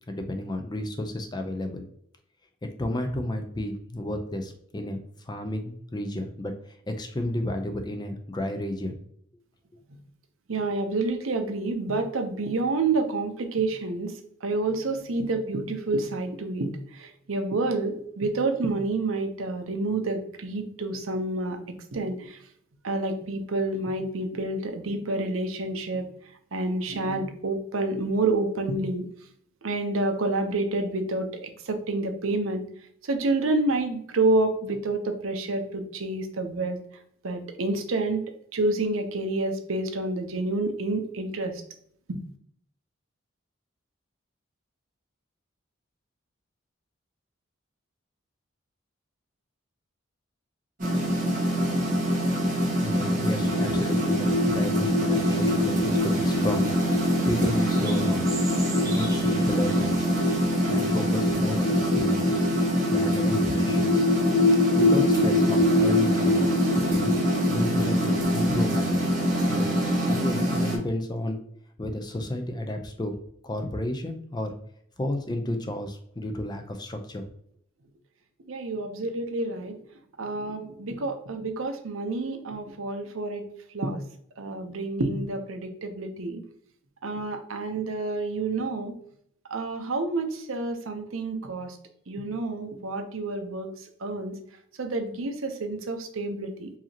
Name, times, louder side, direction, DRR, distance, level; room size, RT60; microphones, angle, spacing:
voice 1, 0.1-1.8 2.8-6.6 6.9-9.0 52.8-56.7 57.0-58.3 58.8-60.1 60.7-62.5 62.9-64.0 64.5-66.4 66.8-67.1 67.5-69.1 69.5-69.7 70.1-71.5 71.8-73.1 73.4-74.6 75.0-77.2, left 1 dB, 20° left, 5 dB, 0.5 m, -32 dB
voice 2, 10.5-21.6 21.9-22.4 22.8-26.1 26.5-29.1 29.6-32.6 33.0-36.8 37.2-38.2 38.5-41.6 42.1-42.2 78.5-79.8 80.2-84.0 84.4-86.4 87.0-89.0 89.5-91.8 92.1-94.4 94.8-96.7, right 2 dB, 80° right, 6 dB, 0.7 m, -28 dB
sound 1, 50.8-70.8, equal, 40° right, 1.4 m, -25 dB
sound 2, 53.4-69.7, left 2 dB, 60° left, 1.0 m, -27 dB
sound 3, 55.1-60.5, right 3 dB, 15° right, 0.7 m, -41 dB
4.8 x 2.8 x 2.8 m, 0.66 s
head